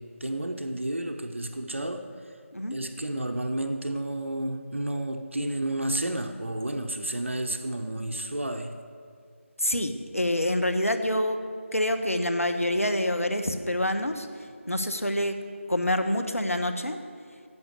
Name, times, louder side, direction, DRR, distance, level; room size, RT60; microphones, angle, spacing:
voice 1, 0.0-2.1 2.7-8.8, right 1 dB, 60° right, 6 dB, 0.9 m, -31 dB
voice 2, 9.6-11.4 11.7-14.3 14.7-15.4 15.7-17.0, left 1 dB, 85° left, 7 dB, 1.2 m, -26 dB
11.0 x 7.4 x 8.0 m, 2.2 s
figure-of-eight pair, 165°, 7 cm